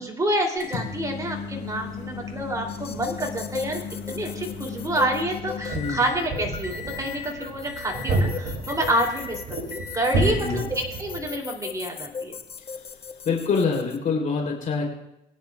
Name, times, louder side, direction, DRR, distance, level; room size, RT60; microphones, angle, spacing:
voice 1, 0.0-3.8 4.1-12.4, right 1 dB, 20° right, 1 dB, 2.8 m, -28 dB
Microwave oven, 0.6-6.2 6.6-7.3 7.7-8.3 8.7-9.3 9.7-10.5 11.5-11.6 13.6-13.7, left 6 dB, 85° left, 3.3 m, -36 dB
sound 1, 2.7-14.0, left 6 dB, 35° left, 0.7 m, -39 dB
sound 2, 5.7-11.3, right 2 dB, 65° right, 2.7 m, -30 dB
voice 2, 10.1-10.6 12.6-12.9 13.2-14.9, left 5 dB, 50° left, 0 dB, 3.2 m, -26 dB
22.0 x 10.0 x 2.3 m, 0.85 s
cardioid pair, 110°, 17 cm